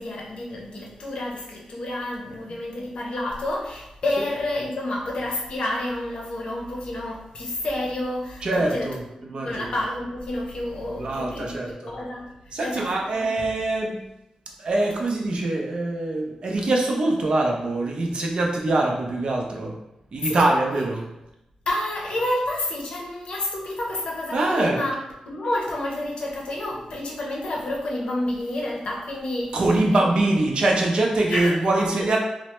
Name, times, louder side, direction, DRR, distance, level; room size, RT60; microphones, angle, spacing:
voice 1, 0.0-8.9 9.4-13.2 20.2-20.4 20.7-20.9 21.7-24.9 25.3-29.6 29.9-30.0 31.3-31.9, left 1 dB, 55° left, -2 dB, 0.6 m, -29 dB
voice 2, 8.4-9.6 11.0-11.7 12.5-14.0 14.6-19.8 20.1-21.0 24.3-24.8 29.5-32.2, right 2 dB, 50° right, 0 dB, 0.5 m, -23 dB
3.2 x 2.0 x 2.9 m, 0.91 s
wide cardioid pair, 165°, 2 cm